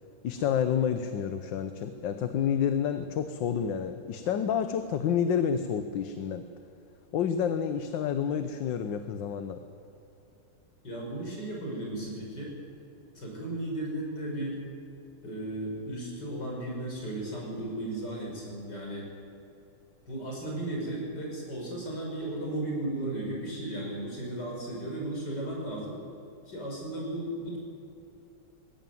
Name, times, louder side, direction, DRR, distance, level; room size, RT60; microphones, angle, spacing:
voice 1, 0.2-6.5 7.1-9.6, left 8 dB, 85° left, 9 dB, 1.6 m, -29 dB
voice 2, 10.8-12.5 13.1-14.6 15.2-19.1 20.1-26.0 26.5-27.6, right 1 dB, 65° left, -2 dB, 6.3 m, -35 dB
20.0 x 16.0 x 9.2 m, 2.8 s
omnidirectional pair, 2.0 m